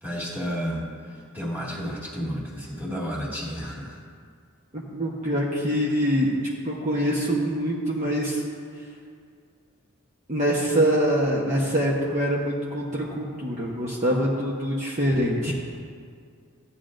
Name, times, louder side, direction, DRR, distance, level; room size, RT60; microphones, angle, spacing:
voice 1, 0.0-4.0, equal, 10° right, -6 dB, 2.0 m, -32 dB
voice 2, 4.7-6.3 6.6-8.4 10.3-15.5, equal, 35° right, -5 dB, 1.0 m, -24 dB
16.0 x 10.0 x 2.6 m, 2.2 s
head